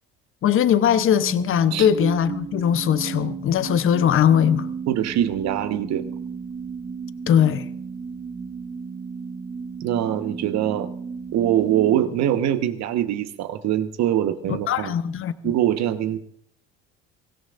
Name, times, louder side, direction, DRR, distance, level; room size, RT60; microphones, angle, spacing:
voice 1, 0.4-4.7 7.3-7.7 14.7-15.3, left 9 dB, 40° left, 0.9 m, -20 dB
sound 1, 0.8-13.0, right 6 dB, 35° right, 1.5 m, -34 dB
voice 2, 4.9-6.0 9.8-10.9 11.3-14.9 15.4-16.2, right 11 dB, 55° right, 1.3 m, -23 dB
24.0 x 16.0 x 2.6 m
hypercardioid pair, 75°, 32 cm